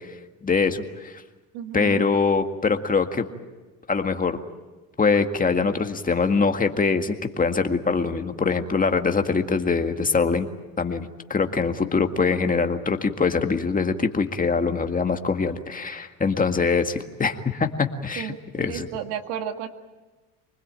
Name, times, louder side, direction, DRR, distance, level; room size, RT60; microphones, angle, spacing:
voice 1, 0.4-1.2 1.7-3.3 3.9-4.4 5.0-10.5 10.8-18.9, left 4 dB, 20° left, 6 dB, 1.9 m, -23 dB
voice 2, 1.5-2.1 18.2-19.7, right 9 dB, 75° right, 7 dB, 2.1 m, -33 dB
25.0 x 20.5 x 8.9 m, 1.2 s
supercardioid pair, 90°, 40 cm